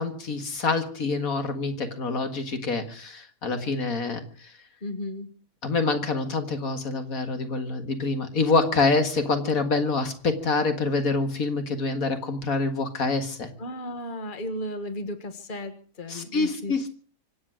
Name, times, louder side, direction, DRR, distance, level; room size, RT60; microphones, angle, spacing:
voice 1, 0.0-4.5 5.6-13.5 16.1-16.9, left 3 dB, 80° left, 7 dB, 2.2 m, -26 dB
voice 2, 4.8-5.3 13.6-16.9, left 1 dB, 35° left, 9 dB, 1.7 m, -35 dB
25.5 x 8.6 x 6.3 m, 0.43 s
omnidirectional pair, 1.5 m